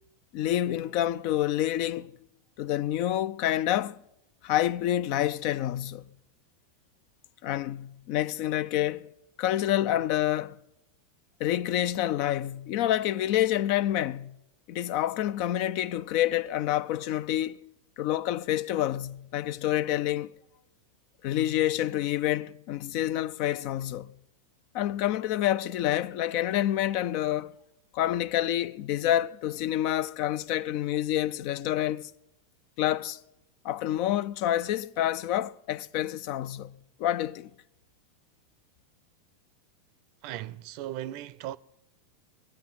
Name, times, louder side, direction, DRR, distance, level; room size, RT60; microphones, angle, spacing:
voice 1, 0.3-2.1 2.6-4.0 4.4-6.0 7.4-9.1 9.4-10.6 11.4-14.3 14.7-17.7 18.0-20.3 21.2-24.1 24.7-27.5 27.9-32.1 32.8-33.2 33.6-36.7 37.0-37.5, left 13 dB, 55° left, 0.5 m, -28 dB
voice 2, 40.2-41.6, right 13 dB, 55° right, 0.6 m, -37 dB
23.0 x 8.7 x 5.9 m
hypercardioid pair, 100°, 0 cm